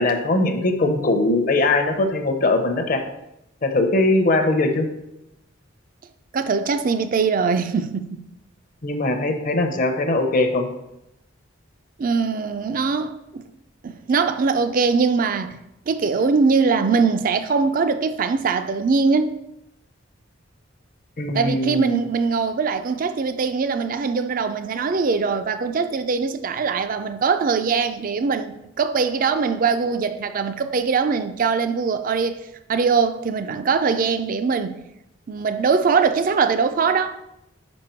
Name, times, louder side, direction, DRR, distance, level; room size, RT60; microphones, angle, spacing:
voice 1, 0.0-3.0 3.6-4.9 8.8-10.7 21.2-22.0, left 2 dB, 45° left, 0.7 m, -21 dB
voice 2, 6.3-8.2 12.0-13.5 13.8-15.5 15.9-19.4 21.3-32.4 32.7-34.8 35.3-37.2, right 5 dB, 45° right, 0.4 m, -22 dB
5.2 x 5.0 x 4.5 m
head